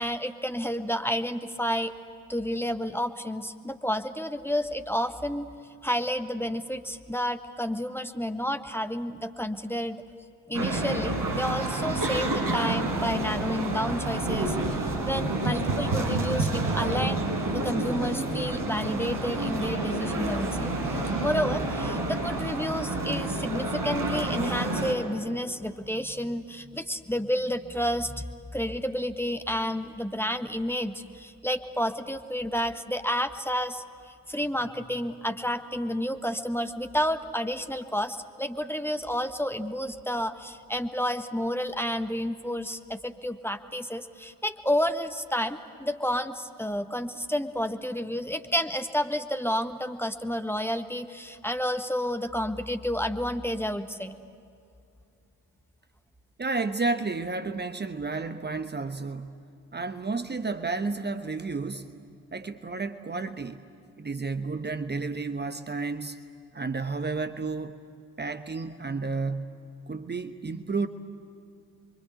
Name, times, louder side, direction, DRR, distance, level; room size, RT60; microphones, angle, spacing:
voice 1, 0.0-1.9 2.3-5.5 5.8-10.0 10.5-20.7 21.2-28.2 28.5-54.1, equal, 5° left, 8 dB, 1.4 m, -30 dB
sound 1, 10.5-24.9, right 2 dB, 50° right, 4.6 m, -29 dB
voice 2, 56.4-59.4 59.7-61.9 62.3-63.6 64.0-66.2 66.5-67.7 68.2-69.6 69.9-70.9, right 3 dB, 25° right, 9 dB, 1.2 m, -31 dB
29.0 x 24.0 x 8.2 m, 2.5 s
figure-of-eight pair, 40°, 43 cm